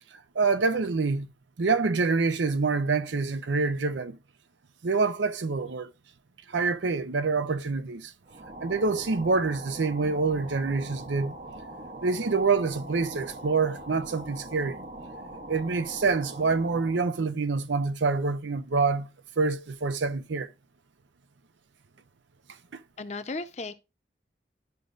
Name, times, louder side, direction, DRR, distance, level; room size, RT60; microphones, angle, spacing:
voice 1, 0.4-1.3 1.6-4.2 4.8-5.9 6.5-8.1 8.6-11.3 12.0-14.8 15.5-19.1 19.4-20.5 22.7-22.8, right 4 dB, 80° right, 0.6 m, -26 dB
sound 1, 8.3-17.1, right 1 dB, 45° right, 0.8 m, -42 dB
voice 2, 23.0-23.7, left 3 dB, 40° left, 0.7 m, -35 dB
13.0 x 5.2 x 2.4 m
head